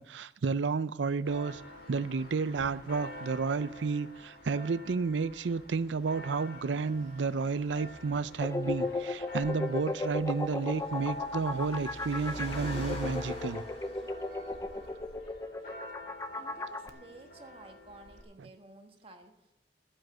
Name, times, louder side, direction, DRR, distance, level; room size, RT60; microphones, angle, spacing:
voice 1, 0.0-1.6 1.9-13.6, right 4 dB, 80° right, 0.5 m, -31 dB
Church bell, 1.2-18.2, left 1 dB, 55° left, 2.2 m, -50 dB
Car, 7.5-15.5, left 1 dB, 35° left, 2.7 m, -45 dB
sound 1, 8.4-16.9, left 2 dB, 15° left, 0.6 m, -35 dB
voice 2, 16.3-19.5, right 2 dB, 30° right, 1.5 m, -53 dB
11.5 x 7.8 x 7.5 m
head